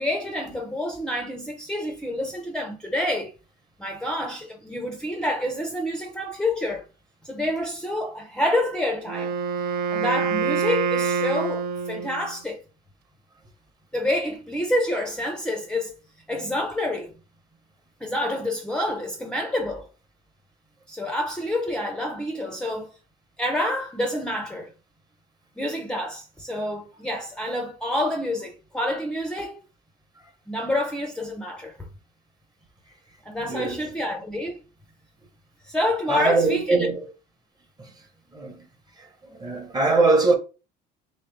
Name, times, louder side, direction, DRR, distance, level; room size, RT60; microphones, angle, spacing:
voice 1, 0.0-3.3 3.8-6.9 7.2-9.3 9.9-12.6 13.9-15.9 16.3-17.1 18.0-19.9 20.9-22.9 23.4-24.7 25.6-29.6 30.5-31.9 33.2-34.6 35.6-36.9, left 1 dB, 5° left, 0.5 m, -28 dB
Wind instrument woodwind instrument, 9.1-12.4, right 5 dB, 55° right, 0.4 m, -26 dB
voice 2, 33.4-33.9 36.1-37.0 37.8-37.9 38.3-38.7 39.0-40.3, right 3 dB, 20° right, 0.9 m, -22 dB
3.3 x 3.0 x 3.2 m
cardioid pair, 125°, 18 cm